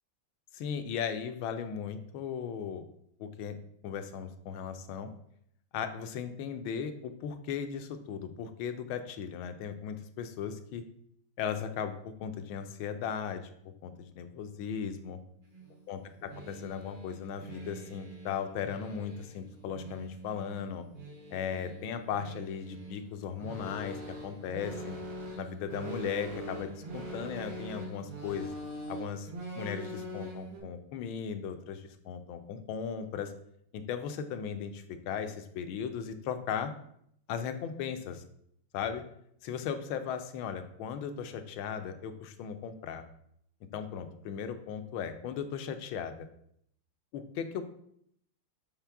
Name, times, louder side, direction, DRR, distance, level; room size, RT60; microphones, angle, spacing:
voice 1, 0.5-2.9 3.2-3.5 3.8-5.1 5.7-10.8 11.4-13.5 13.8-15.2 15.9-20.9 21.3-25.0 25.4-28.5 28.9-29.3 29.5-33.3 33.7-36.7 37.3-38.2 38.7-39.0 39.4-43.0 43.7-46.3 47.1-47.6, left 7 dB, 85° left, 8 dB, 1.5 m, -37 dB
sound 1, 15.4-30.6, right 1 dB, 75° right, 2.4 m, -43 dB
7.3 x 4.4 x 3.4 m, 0.69 s
omnidirectional pair, 2.2 m